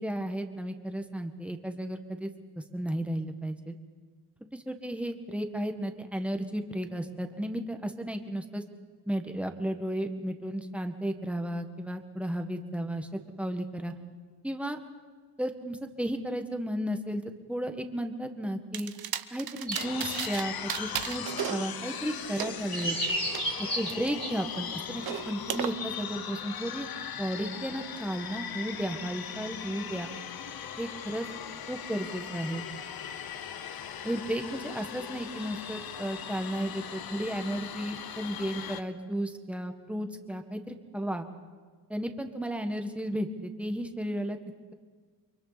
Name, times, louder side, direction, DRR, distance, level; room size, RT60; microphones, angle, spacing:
voice 1, 0.0-3.8 4.5-8.6 9.1-13.9 14.4-14.8 15.4-18.9 19.3-21.2 21.5-23.0 23.6-26.9 27.2-30.1 30.8-31.3 31.7-32.6 34.0-41.3 41.9-44.4, right 1 dB, 5° right, 5 dB, 1.6 m, -34 dB
sound 1, 18.7-20.4 20.7-23.4 23.9-25.7, right 9 dB, 60° right, 1.0 m, -36 dB
sound 2, 19.7-38.8, left 8 dB, 60° left, 1.1 m, -39 dB
sound 3, 19.7-20.5 21.1-21.3 22.2-24.6 25.6-25.7, right 1 dB, 15° left, 3.3 m, -34 dB
29.5 x 23.5 x 4.2 m, 1.5 s
cardioid pair, 105°, 41 cm